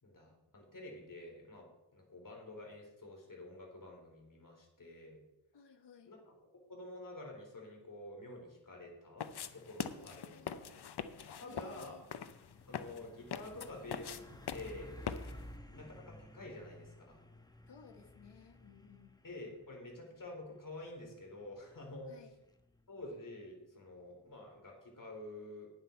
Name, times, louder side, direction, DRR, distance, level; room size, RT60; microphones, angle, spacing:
voice 1, 0.0-5.2 6.0-10.8 11.4-12.0 12.7-14.9 15.7-17.2 19.2-22.1 22.9-25.7, left 2 dB, 50° left, 0 dB, 4.0 m, -49 dB
voice 2, 5.5-6.1 10.0-10.6 11.4-12.0 15.3-15.8 17.7-19.1 22.1-22.3, left 5 dB, 85° left, 6 dB, 1.4 m, -58 dB
sound 1, 9.2-15.5, left 7 dB, 70° left, 0.8 m, -43 dB
Truck, 11.1-24.7, left 1 dB, 10° left, 1.0 m, -56 dB
11.0 x 9.7 x 4.6 m, 0.90 s
wide cardioid pair, 85°, 41 cm